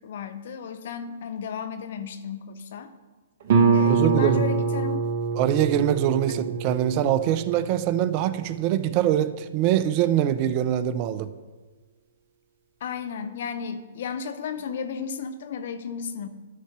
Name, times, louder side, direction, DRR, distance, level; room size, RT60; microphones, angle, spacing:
voice 1, 0.0-2.9 3.7-5.1 6.3-6.5 12.8-16.3, left 6 dB, 60° left, 11 dB, 0.7 m, -34 dB
Guitar, 3.5-8.9, right 5 dB, 55° right, 0.9 m, -25 dB
voice 2, 3.9-4.4 5.3-11.3, right 11 dB, 40° right, 14 dB, 0.4 m, -23 dB
11.5 x 4.2 x 5.9 m, 1.3 s
hypercardioid pair, 125°, 0 cm